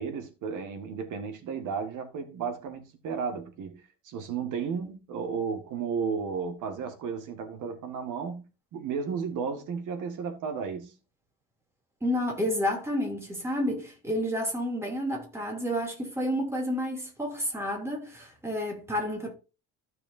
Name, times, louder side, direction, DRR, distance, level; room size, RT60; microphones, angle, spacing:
voice 1, 0.0-8.4 8.7-10.9, right 6 dB, 60° right, 1.9 m, -33 dB
voice 2, 12.0-19.3, equal, 5° right, 2.9 m, -30 dB
14.5 x 6.7 x 2.7 m
cardioid pair, 170°, 34 cm